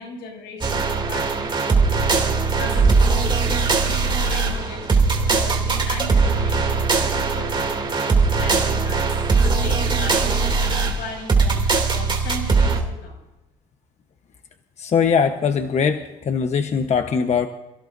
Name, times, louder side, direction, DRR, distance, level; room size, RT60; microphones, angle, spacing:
voice 1, 0.0-2.2 2.6-9.1 9.4-10.3 10.6-11.6 11.9-13.2, left 3 dB, 80° left, 1 dB, 7.1 m, -37 dB
sound 1, 0.6-12.8, right 4 dB, 25° right, 2.9 m, -20 dB
voice 2, 14.8-17.5, left 6 dB, 40° left, 6 dB, 1.2 m, -21 dB
29.0 x 16.0 x 2.7 m, 0.98 s
cardioid pair, 110°, 17 cm